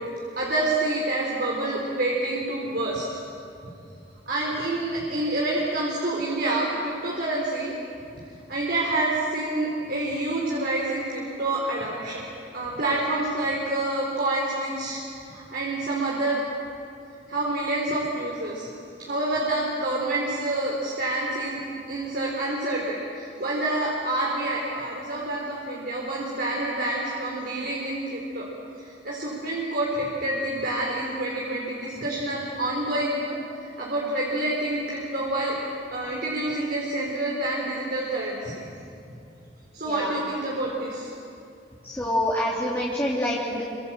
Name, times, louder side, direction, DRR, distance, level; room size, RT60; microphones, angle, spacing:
voice 1, 0.4-3.1 4.3-7.7 8.5-12.2 12.5-15.0 15.3-16.4 17.3-18.7 19.0-28.5 28.8-35.6 35.9-38.5 39.7-41.1, right 2 dB, 60° right, -3 dB, 4.0 m, -27 dB
voice 2, 41.8-43.6, left 1 dB, 15° left, -5 dB, 2.8 m, -26 dB
27.5 x 25.0 x 7.6 m, 2.6 s
head